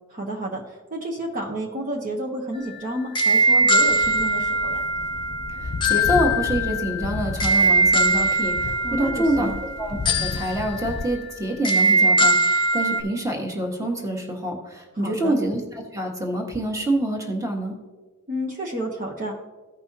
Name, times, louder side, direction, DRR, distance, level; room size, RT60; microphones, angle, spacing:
voice 1, 0.1-4.8 8.8-9.6 15.0-15.3 18.3-19.3, right 1 dB, 40° right, -1 dB, 1.0 m, -31 dB
sound 1, 2.5-13.0, right 2 dB, 20° left, 0.7 m, -22 dB
sound 2, 3.6-11.1, left 3 dB, 85° left, 0.6 m, -34 dB
voice 2, 5.5-9.5 9.8-15.6 15.9-17.8, right 1 dB, 15° right, 0 dB, 1.4 m, -26 dB
15.5 x 5.4 x 2.8 m, 1.3 s
head